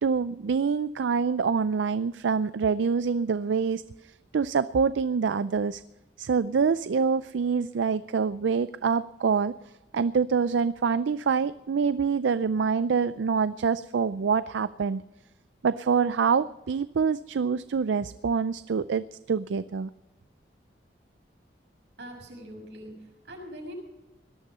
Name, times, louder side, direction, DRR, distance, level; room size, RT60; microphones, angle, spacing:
voice 1, 0.0-5.8 6.2-9.5 9.9-15.0 15.6-19.9, right 5 dB, 90° right, 15 dB, 0.4 m, -26 dB
voice 2, 22.0-23.7, equal, 75° right, 0 dB, 6.6 m, -43 dB
18.5 x 12.0 x 5.5 m, 1.1 s
head